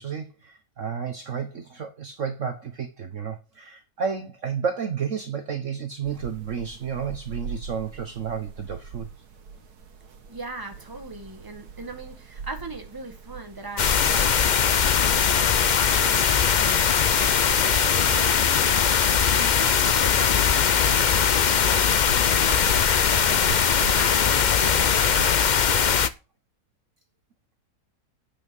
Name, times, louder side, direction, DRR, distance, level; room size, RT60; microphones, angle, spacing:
voice 1, 0.0-9.1, right 7 dB, 55° right, 1.4 m, -31 dB
sound 1, 6.0-25.7, right 5 dB, 75° right, 2.0 m, -42 dB
voice 2, 10.3-22.7 23.2-23.4 24.0-25.3, right 3 dB, 15° right, 1.8 m, -40 dB
sound 2, 13.8-26.1, left 7 dB, 70° left, 0.4 m, -20 dB
9.0 x 8.5 x 5.4 m
omnidirectional pair, 1.7 m